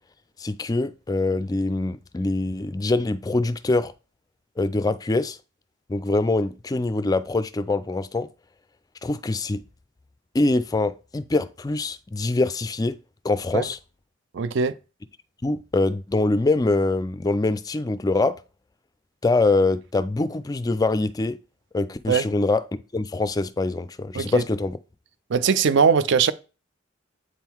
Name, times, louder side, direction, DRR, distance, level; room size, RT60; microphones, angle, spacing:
voice 1, 0.4-3.9 4.6-5.4 5.9-8.3 9.0-9.6 10.3-13.0 13.2-13.8 15.4-18.4 19.2-21.4 21.7-22.6 22.9-24.8, left 2 dB, 20° left, 0.3 m, -24 dB
voice 2, 14.3-14.8 22.1-22.3 24.1-24.4 25.3-26.3, right 6 dB, 60° right, 0.4 m, -20 dB
8.3 x 3.7 x 4.4 m
head